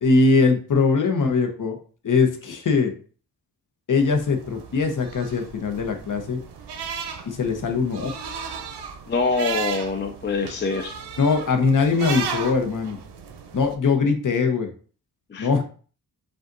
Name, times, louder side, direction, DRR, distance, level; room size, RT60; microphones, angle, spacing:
voice 1, 0.0-1.8 2.0-2.9 3.9-6.4 7.3-8.1 11.2-13.0 13.5-14.7 15.4-15.6, left 4 dB, 50° left, 5 dB, 0.9 m, -21 dB
sound 1, 4.0-13.7, right 6 dB, 85° right, 0.7 m, -35 dB
voice 2, 9.1-11.0 15.3-15.5, left 4 dB, 30° left, 4 dB, 0.4 m, -25 dB
5.2 x 2.4 x 3.9 m, 0.41 s
wide cardioid pair, 135°, 39 cm